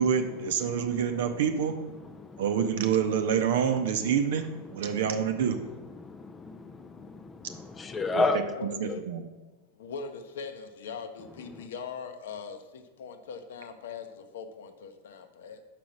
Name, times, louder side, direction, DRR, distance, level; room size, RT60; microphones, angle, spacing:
voice 1, 0.0-1.7 2.4-4.5 4.7-5.6 8.1-8.2 8.8-9.2, right 7 dB, 55° right, 7 dB, 0.6 m, -27 dB
voice 2, 0.7-1.4 1.8-2.9 3.9-4.1 4.6-8.4 11.5-11.7, left 3 dB, 15° left, 9 dB, 0.4 m, -35 dB
voice 3, 8.2-9.0 9.7-15.6, left 6 dB, 60° left, 8 dB, 0.7 m, -41 dB
6.0 x 4.9 x 6.0 m, 1.1 s
figure-of-eight pair, 90°, 0 cm